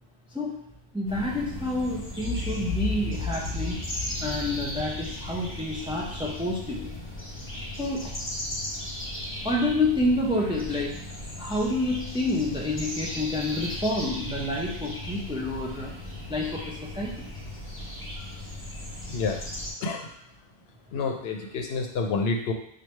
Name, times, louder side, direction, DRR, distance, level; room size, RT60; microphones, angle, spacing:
voice 1, 0.9-3.8 4.2-6.9 7.5-8.1 9.4-11.0 11.4-15.9 16.3-17.3, left 1 dB, 5° right, -3 dB, 0.5 m, -28 dB
sound 1, 1.1-19.7, left 1 dB, 15° left, 1.0 m, -37 dB
Boom, 2.2-6.5, left 4 dB, 50° right, 1.3 m, -34 dB
voice 2, 19.1-19.4 19.8-20.1 20.9-22.5, left 4 dB, 80° left, 3 dB, 0.8 m, -28 dB
3.1 x 2.6 x 4.4 m, 0.73 s
omnidirectional pair, 1.0 m